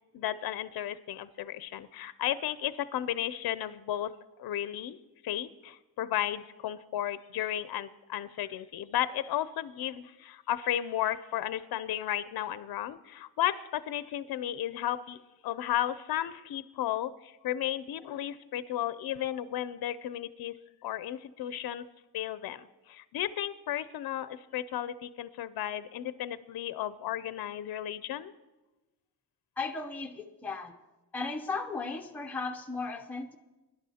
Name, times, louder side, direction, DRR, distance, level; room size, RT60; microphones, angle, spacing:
voice 1, 0.1-4.1 4.4-5.0 5.2-20.5 20.8-21.9 22.1-28.3, left 12 dB, 65° left, 15 dB, 0.5 m, -34 dB
voice 2, 29.6-30.8 31.1-33.4, left 4 dB, 5° left, 3 dB, 0.6 m, -36 dB
23.5 x 11.0 x 2.8 m, 1.1 s
wide cardioid pair, 135°, 40 cm